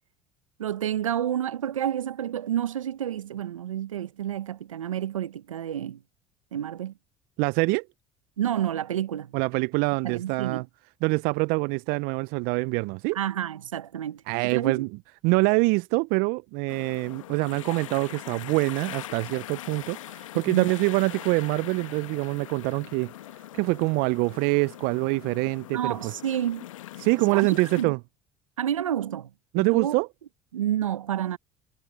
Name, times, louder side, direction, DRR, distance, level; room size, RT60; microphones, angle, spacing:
voice 1, 0.6-6.0 6.5-6.9 8.4-9.3 10.0-10.7 13.1-14.9 20.5-20.7 25.7-26.6 27.3-27.9 28.6-29.3 29.6-30.0 30.5-31.4, right 10 dB, 85° right, 0.9 m, -29 dB
voice 2, 7.4-7.8 9.3-10.6 11.0-13.2 14.3-14.9 15.2-23.1 23.5-26.1 27.0-28.0 29.5-30.1, right 28 dB, 65° right, 0.6 m, -25 dB
sound 1, 16.7-27.8, left 14 dB, 80° left, 1.2 m, -42 dB
hypercardioid pair, 60°, 16 cm